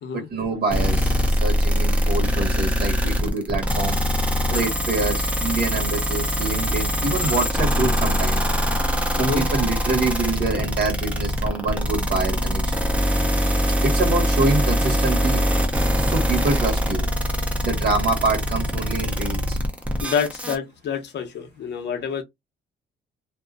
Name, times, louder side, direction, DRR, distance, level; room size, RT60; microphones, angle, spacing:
voice 1, 0.1-4.0 4.5-8.4 9.1-12.8 13.8-15.4 16.0-17.1 17.6-19.6, right 3 dB, 55° right, 1.3 m, -26 dB
sound 1, 0.7-20.6, equal, 5° right, 0.8 m, -22 dB
voice 2, 20.0-22.2, left 7 dB, 60° left, 0.9 m, -27 dB
2.6 x 2.3 x 2.3 m
cardioid pair, 90°, 20 cm